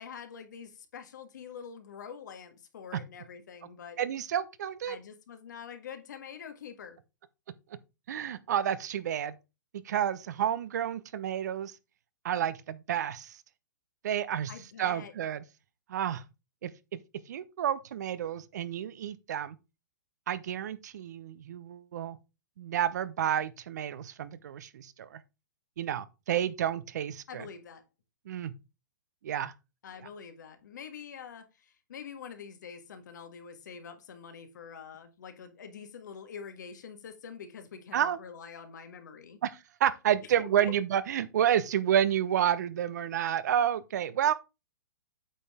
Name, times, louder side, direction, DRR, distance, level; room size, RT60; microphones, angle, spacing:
voice 1, 0.0-4.0 4.9-7.0 14.5-15.1 27.3-27.8 29.8-39.4 40.4-40.7, left 7 dB, 70° left, 1.7 m, -45 dB
voice 2, 4.0-5.0 8.1-9.3 9.8-11.8 12.2-13.4 14.0-14.5 14.8-15.4 15.9-16.2 16.6-17.0 17.3-19.6 20.3-22.2 22.6-25.2 25.8-27.5 28.3-28.5 29.2-29.5 37.9-38.2 39.4-44.3, right 10 dB, 65° right, 0.8 m, -30 dB
8.5 x 5.5 x 3.6 m
hypercardioid pair, 140°, 10 cm